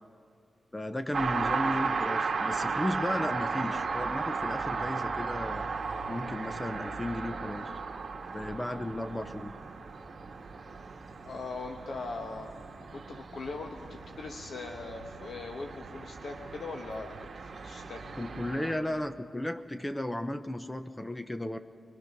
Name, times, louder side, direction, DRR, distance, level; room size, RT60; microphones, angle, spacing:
voice 1, 0.7-5.8 6.1-7.7 8.3-9.6 18.2-21.6, left 1 dB, 10° left, 9 dB, 0.5 m, -34 dB
sound 1, 1.1-18.8, right 4 dB, 55° right, 1.6 m, -35 dB
voice 2, 11.2-12.5 12.9-17.1 17.4-18.1, left 3 dB, 70° left, 3 dB, 1.2 m, -40 dB
22.0 x 22.0 x 5.9 m, 2.3 s
wide cardioid pair, 155°, 0 cm